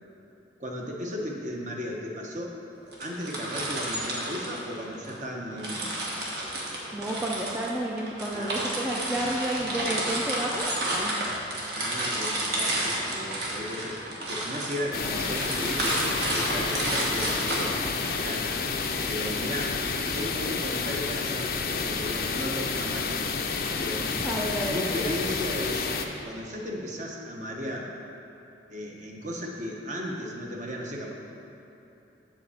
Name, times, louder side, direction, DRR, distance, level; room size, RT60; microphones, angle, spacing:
voice 1, 0.6-2.6 3.0-6.0 8.3-8.5 9.1-9.2 11.7-18.5 19.1-19.8 20.1-23.3 23.8-24.1 24.6-25.9 26.2-27.9 28.7-31.1, equal, 40° right, -1 dB, 1.0 m, -35 dB
sound 1, 2.9-5.2 5.6-18.3, right 1 dB, 65° right, 1.4 m, -31 dB
voice 2, 6.9-11.2 24.2-25.0, right 1 dB, 5° right, -3 dB, 0.4 m, -31 dB
Waterfall in the Harzmountains, 14.9-26.1, left 5 dB, 55° left, 0.5 m, -30 dB
7.9 x 4.3 x 7.1 m, 3.0 s
head